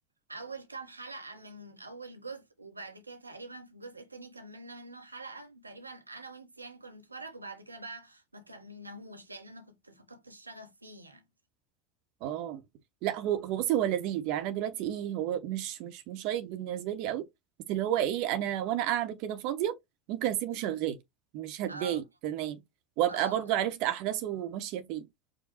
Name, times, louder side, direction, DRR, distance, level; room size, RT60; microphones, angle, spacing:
voice 1, 0.3-11.2 21.7-22.0 23.1-23.5, right 2 dB, 90° right, 0.8 m, -45 dB
voice 2, 12.2-12.6 13.0-17.2 17.7-19.8 20.1-21.0 21.3-22.6 23.0-25.1, right 11 dB, 55° right, 0.8 m, -31 dB
5.1 x 2.2 x 4.3 m
figure-of-eight pair, 80°, 0 cm